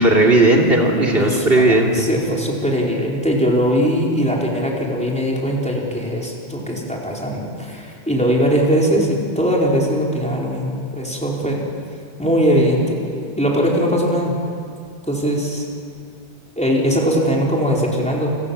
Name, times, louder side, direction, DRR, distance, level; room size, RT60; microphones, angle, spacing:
voice 1, 0.0-2.1, right 2 dB, 70° right, 0 dB, 3.2 m, -15 dB
voice 2, 1.1-1.6 1.9-11.6 12.2-14.4 15.1-15.6 16.6-18.3, equal, 5° left, -3 dB, 4.7 m, -20 dB
29.5 x 25.5 x 7.3 m, 2.3 s
omnidirectional pair, 1.0 m